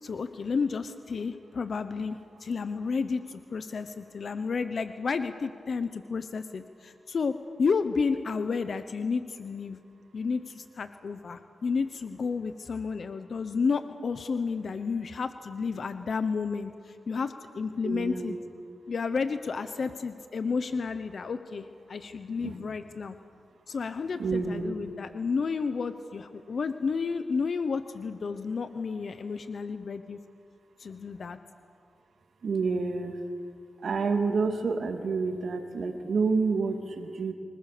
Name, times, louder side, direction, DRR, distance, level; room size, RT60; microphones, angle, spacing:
voice 1, 0.0-7.3 7.6-9.8 10.1-18.4 18.9-23.2 23.7-30.2 30.8-31.4, left 5 dB, 60° left, 10 dB, 0.9 m, -31 dB
voice 2, 17.8-18.4 22.4-22.6 24.2-24.8 32.4-33.2 33.8-37.3, right 4 dB, 70° right, 5 dB, 2.4 m, -28 dB
25.5 x 20.5 x 6.8 m, 2.2 s
cardioid pair, 75°, 0 cm